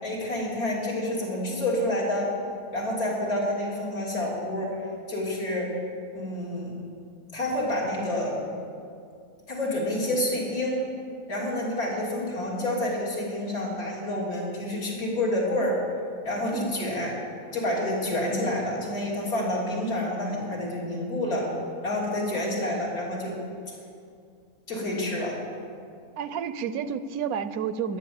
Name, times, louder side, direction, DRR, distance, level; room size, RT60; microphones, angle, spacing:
voice 1, 0.0-2.3 2.7-4.7 5.1-5.8 6.1-6.7 7.3-8.5 9.5-10.8 11.3-15.8 16.2-17.1 17.5-21.5 21.8-23.4 23.7-23.8 24.7-25.4, left 1 dB, 85° left, -5 dB, 3.8 m, -28 dB
voice 2, 16.5-17.0 22.3-22.7 26.2-28.0, right 7 dB, 80° right, 13 dB, 1.1 m, -31 dB
14.0 x 10.5 x 7.0 m, 2.4 s
omnidirectional pair, 1.5 m